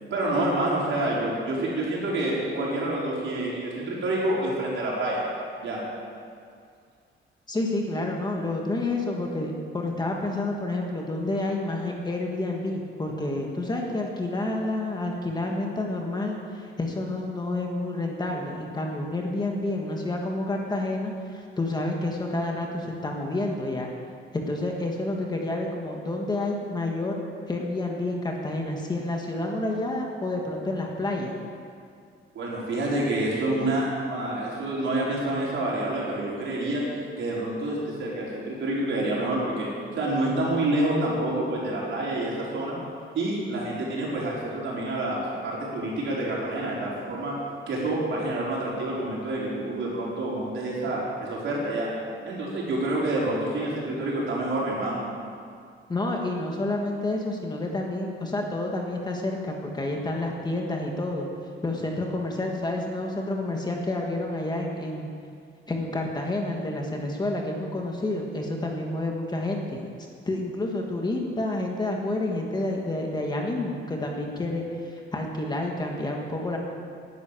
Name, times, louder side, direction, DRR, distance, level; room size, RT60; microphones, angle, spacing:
voice 1, 0.1-5.2 5.6-5.8 32.3-36.8 37.2-39.7 40.0-42.8 43.1-47.3 47.7-51.9 52.2-55.0, right 1 dB, 65° right, -5 dB, 4.6 m, -28 dB
voice 2, 7.5-23.9 24.3-27.2 27.5-31.4 55.9-61.3 61.6-65.1 65.7-69.8 70.2-76.6, left 2 dB, 20° left, 0 dB, 1.5 m, -29 dB
11.5 x 11.0 x 9.0 m, 2.2 s
wide cardioid pair, 180°, 21 cm